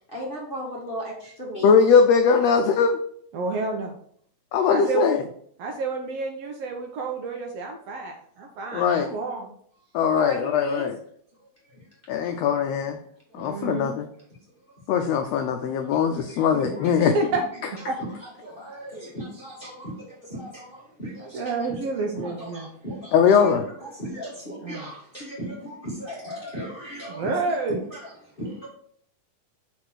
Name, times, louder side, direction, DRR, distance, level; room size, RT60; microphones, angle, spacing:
voice 1, 0.1-1.7 10.2-10.9 11.7-11.8 12.2-12.4 13.3-13.4 15.8-17.2 18.0-21.5 22.1-23.1 23.5-27.3 27.9-28.1 28.4-28.7, equal, 30° left, -5 dB, 0.9 m, -36 dB
voice 2, 1.6-3.0 4.5-5.2 8.7-9.1 9.9-10.9 12.1-13.0 13.3-14.1 14.9-17.1 23.1-23.6, left 6 dB, 85° left, 6 dB, 1.4 m, -20 dB
voice 3, 3.3-3.9 4.7-5.1 5.6-9.5 13.3-13.9 17.0-17.4 17.9-18.0 21.2-22.7 24.6-24.9 27.1-27.8, right 4 dB, 70° right, 2 dB, 1.6 m, -29 dB
5.2 x 4.2 x 6.0 m, 0.63 s
omnidirectional pair, 3.5 m